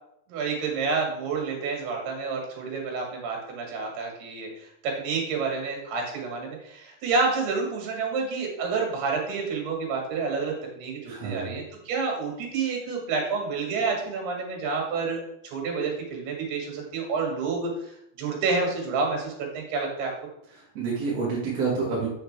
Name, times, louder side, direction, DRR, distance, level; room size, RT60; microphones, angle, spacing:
voice 1, 0.3-4.5 4.8-15.2 15.5-17.9 18.2-20.1, right 4 dB, 80° right, 0 dB, 3.8 m, -29 dB
voice 2, 11.1-11.5 20.7-22.1, right 4 dB, 50° right, -5 dB, 2.1 m, -28 dB
7.3 x 6.7 x 3.3 m, 0.76 s
omnidirectional pair, 4.5 m